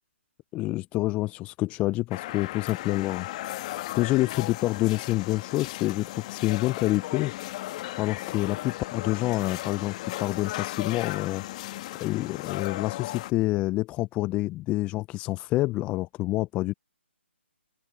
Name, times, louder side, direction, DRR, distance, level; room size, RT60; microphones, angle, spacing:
voice 1, 0.5-3.3 3.9-7.3 8.0-11.4 12.0-16.7, left 18 dB, 20° left, 0.5 m, -27 dB
sound 1, 2.1-13.3, left 16 dB, 35° left, 1.4 m, -36 dB
open air
figure-of-eight pair, 140°, 7 cm